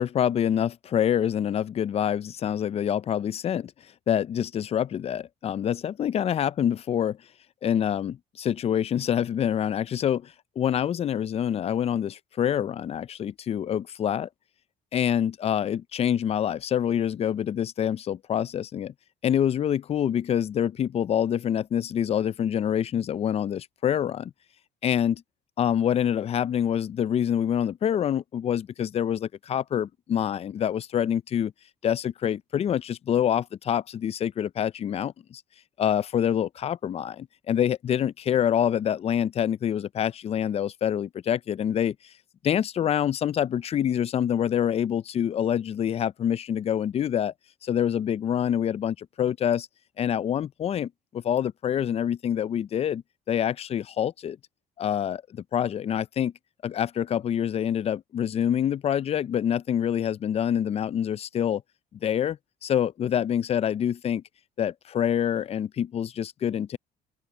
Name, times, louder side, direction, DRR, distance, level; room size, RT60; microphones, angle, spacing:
voice 1, 0.0-3.7 4.1-7.2 7.6-14.3 14.9-18.9 19.2-24.3 24.8-25.2 25.6-31.5 31.8-35.4 35.8-42.0 42.4-47.3 47.6-49.7 50.0-53.0 53.3-54.4 54.8-56.3 56.6-61.6 62.0-64.2 64.6-66.8, left 9 dB, 35° left, 0.4 m, -26 dB
open air
cardioid pair, 110°, 17 cm